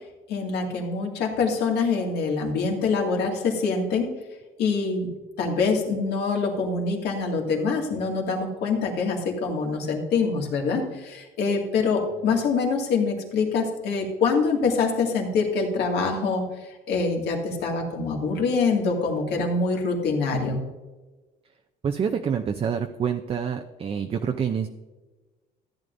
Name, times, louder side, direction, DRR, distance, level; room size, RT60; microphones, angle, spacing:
voice 1, 0.3-4.1 4.6-5.1 5.4-16.4 16.9-20.6, left 4 dB, 80° left, 1 dB, 2.2 m, -25 dB
voice 2, 21.8-24.7, right 7 dB, 35° right, 5 dB, 0.6 m, -27 dB
14.0 x 9.1 x 2.6 m, 1.2 s
cardioid pair, 110°, 17 cm